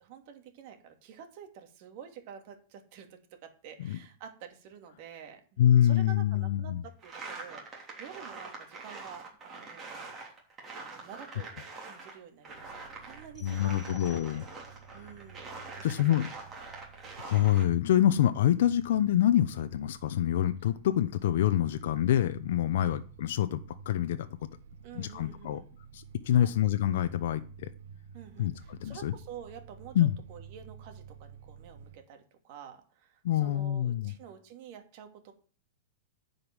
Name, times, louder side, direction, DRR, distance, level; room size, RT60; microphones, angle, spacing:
voice 1, 0.0-10.0 10.8-11.5 11.8-14.4 14.9-16.2 22.7-22.9 24.8-25.6 26.3-26.5 28.1-35.3, right 8 dB, 45° right, 2.4 m, -49 dB
voice 2, 5.6-6.8 13.4-14.4 15.8-16.3 17.2-24.3 24.9-25.6 25.9-27.7 28.4-29.1 29.9-30.2 33.2-34.1, left 11 dB, 70° left, 0.7 m, -26 dB
sound 1, 7.0-12.2 12.4-17.6, right 3 dB, 20° right, 3.3 m, -45 dB
sound 2, 12.4-32.0, right 7 dB, 85° right, 1.6 m, -52 dB
sound 3, 13.3-14.9, left 6 dB, 15° left, 1.3 m, -56 dB
10.0 x 5.3 x 7.3 m
supercardioid pair, 155°, 0 cm